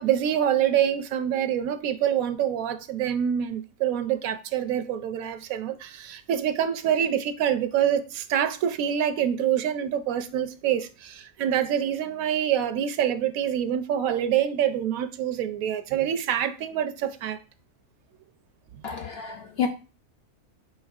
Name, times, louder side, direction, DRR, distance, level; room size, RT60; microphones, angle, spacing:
voice 1, 0.0-17.4, right 9 dB, 85° right, 1.0 m, -26 dB
voice 2, 18.8-19.7, left 7 dB, 60° left, 0.7 m, -29 dB
5.0 x 4.5 x 2.3 m
omnidirectional pair, 1.4 m